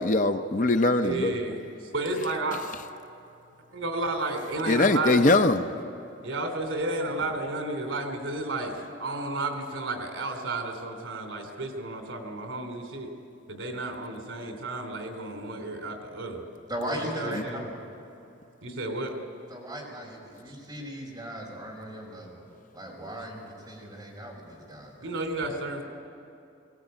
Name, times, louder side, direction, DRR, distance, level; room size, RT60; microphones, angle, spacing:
voice 1, 0.0-1.3 4.7-5.6, left 2 dB, 40° left, 8 dB, 0.7 m, -22 dB
voice 2, 1.0-1.6 1.9-2.6 3.7-5.4 6.2-8.7 9.0-13.1 13.5-16.4 17.1-17.6 18.6-19.2 25.0-25.8, right 2 dB, 85° right, 4 dB, 3.0 m, -32 dB
voice 3, 16.7-17.8 19.5-22.4 22.7-25.2, equal, 20° right, -3 dB, 5.4 m, -37 dB
22.0 x 17.5 x 9.0 m, 2.7 s
head